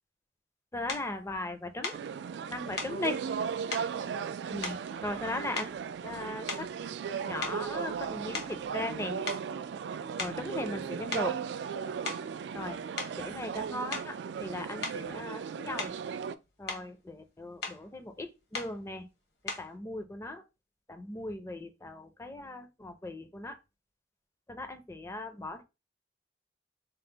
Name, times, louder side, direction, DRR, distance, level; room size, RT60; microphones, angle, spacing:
voice 1, 0.7-2.0 2.5-3.2 4.5-5.7 6.0-6.7 7.3-9.2 10.2-11.3 12.5-12.8 13.2-15.9 16.6-19.1 19.4-20.4 20.9-23.6 24.5-25.6, left 2 dB, 15° left, 0.5 m, -38 dB
sound 1, 0.9-1.1 1.8-2.1 2.8-3.0 3.7-3.9 4.6-5.2 5.5-5.9 6.4-6.8 7.4-9.0 9.3-9.5 10.2-10.5 11.1-11.3 11.9-12.3 13.0-13.2 13.9-14.2 14.8-15.0 15.8-16.1 16.4-16.9 17.6-17.8 18.5-18.8 19.5-19.7, left 4 dB, 65° left, 1.0 m, -38 dB
sound 2, 1.9-16.3, right 7 dB, 70° right, 0.3 m, -36 dB
4.4 x 2.0 x 3.8 m
head